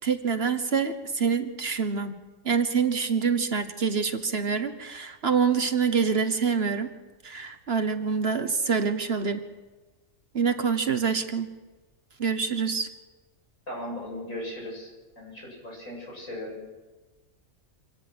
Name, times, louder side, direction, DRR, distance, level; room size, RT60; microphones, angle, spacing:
voice 1, 0.0-2.1 2.4-6.9 7.2-9.4 10.3-11.5 12.2-12.9, right 5 dB, 50° right, 9 dB, 1.4 m, -26 dB
voice 2, 13.7-16.6, left 1 dB, 80° left, -2 dB, 7.8 m, -37 dB
26.0 x 17.5 x 6.2 m, 1.2 s
omnidirectional pair, 1.4 m